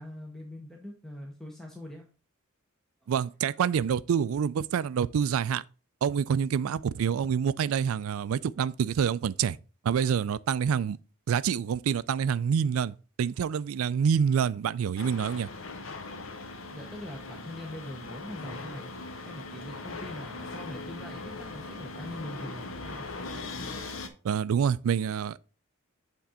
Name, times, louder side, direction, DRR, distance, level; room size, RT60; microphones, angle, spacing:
voice 1, 0.0-2.0 16.7-18.9 19.2-23.1, left 1 dB, ahead, 0.8 m, -42 dB
voice 2, 3.1-5.6 6.0-9.6 9.8-11.0 11.3-15.5 24.2-25.4, right 7 dB, 80° right, 0.3 m, -27 dB
sound 1, 15.0-24.1, left 3 dB, 70° left, 0.9 m, -40 dB
8.1 x 3.7 x 4.2 m
head